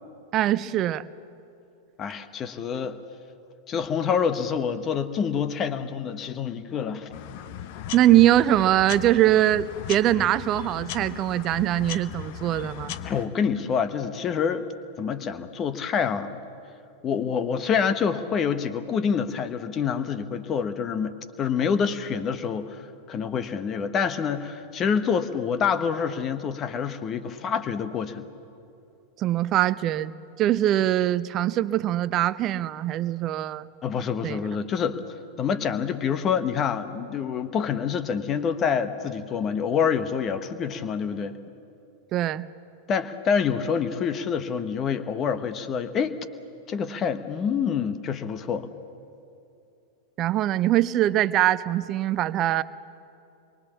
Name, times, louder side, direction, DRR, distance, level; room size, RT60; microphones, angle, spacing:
voice 1, 0.3-1.0 7.9-12.9 29.2-33.7 34.2-34.4 42.1-42.5 50.2-52.6, right 13 dB, 35° right, 16 dB, 0.7 m, -22 dB
voice 2, 2.0-3.0 3.7-7.1 13.0-14.7 15.0-16.4 17.0-28.2 33.8-35.0 35.4-41.3 42.9-46.2 46.7-48.7, left 7 dB, 30° left, 10 dB, 1.4 m, -27 dB
sound 1, 7.1-13.2, left 10 dB, 50° left, 1.0 m, -37 dB
27.5 x 23.0 x 7.2 m, 2.7 s
figure-of-eight pair, 90°, 0 cm